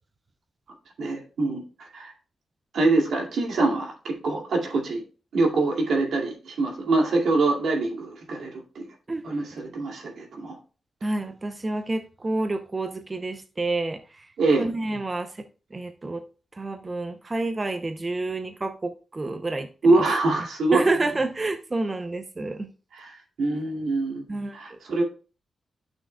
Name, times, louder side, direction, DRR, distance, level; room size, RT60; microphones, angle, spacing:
voice 1, 1.0-2.1 2.7-5.0 5.3-8.9 9.2-10.5 14.4-14.7 19.8-20.8 22.9-24.2 24.5-25.0, right 3 dB, 85° right, 2.2 m, -24 dB
voice 2, 11.0-14.3 14.6-16.2 16.5-20.0 20.7-22.7 24.3-24.8, right 2 dB, 25° right, 0.6 m, -29 dB
12.0 x 6.2 x 2.2 m
wide cardioid pair, 130°, 0 cm